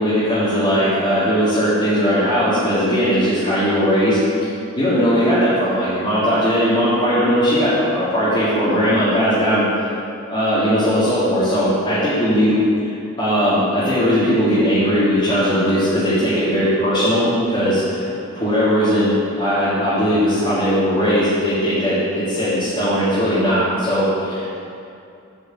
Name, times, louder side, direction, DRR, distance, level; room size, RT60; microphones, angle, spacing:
voice 1, 0.0-4.5 4.8-9.9 10.3-12.6 13.2-24.6, equal, 20° left, -14 dB, 2.2 m, -18 dB
8.6 x 5.1 x 7.2 m, 2.6 s
head